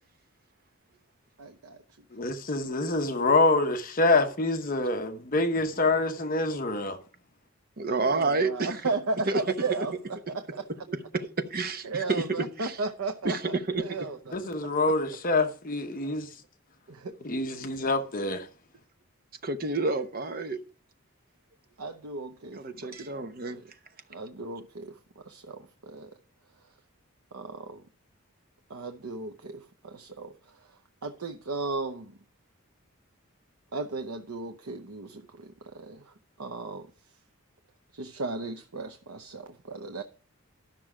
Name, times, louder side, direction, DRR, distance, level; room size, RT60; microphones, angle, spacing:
voice 1, 1.4-1.8 2.9-3.1 8.0-9.9 10.3-10.6 11.8-14.6 16.9-17.2 21.8-23.6 24.1-25.0 25.3-26.1 27.3-27.8 28.7-30.3 31.0-32.1 33.7-36.0 36.4-36.9 37.9-40.0, right 3 dB, 85° right, 0.8 m, -35 dB
voice 2, 2.1-7.0 14.3-16.3 17.2-18.5, left 2 dB, 40° left, 0.9 m, -26 dB
voice 3, 7.8-8.9 9.3-9.8 10.9-12.8 13.2-13.8 19.4-20.6 22.5-23.6, right 3 dB, 45° right, 0.9 m, -29 dB
12.0 x 6.0 x 4.9 m
head